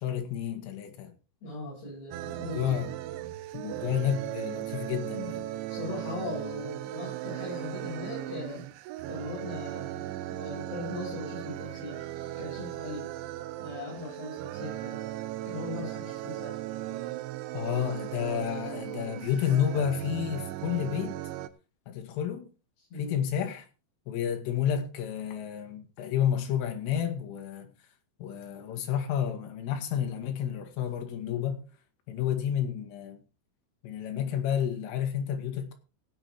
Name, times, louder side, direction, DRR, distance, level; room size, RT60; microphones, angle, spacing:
voice 1, 0.0-1.1 2.3-2.9 3.5-5.5 17.5-21.2 21.9-22.5 23.0-23.7 24.1-27.7 28.2-31.6 32.1-33.2 33.8-35.7, left 9 dB, 90° left, 4.4 m, -30 dB
voice 2, 1.4-2.8 5.7-8.6 9.1-10.0 10.3-15.0 15.5-16.6 22.9-23.2, left 3 dB, 55° left, 9.9 m, -39 dB
sound 1, 2.1-21.5, right 14 dB, 80° right, 3.0 m, -37 dB
16.5 x 8.0 x 4.5 m
omnidirectional pair, 5.6 m